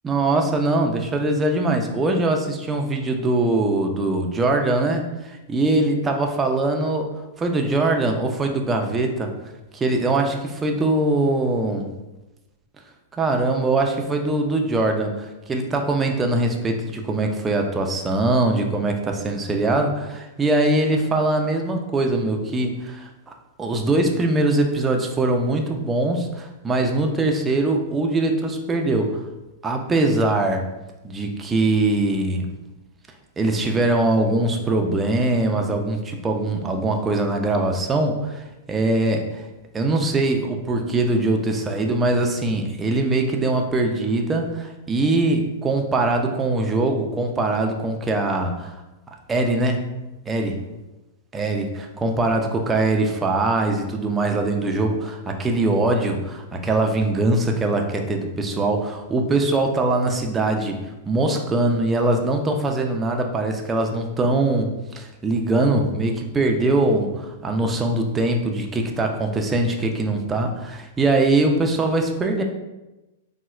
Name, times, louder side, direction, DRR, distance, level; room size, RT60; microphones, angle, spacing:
voice 1, 0.0-7.1 7.4-9.3 9.7-11.9 13.2-19.9 20.4-23.1 23.6-29.2 29.6-30.6 31.0-32.6 33.4-39.4 39.7-48.8 49.3-49.8 50.3-50.6 51.3-72.4, right 2 dB, 15° right, 3 dB, 0.4 m, -22 dB
4.0 x 2.1 x 2.3 m, 1.0 s
hypercardioid pair, 125°, 0 cm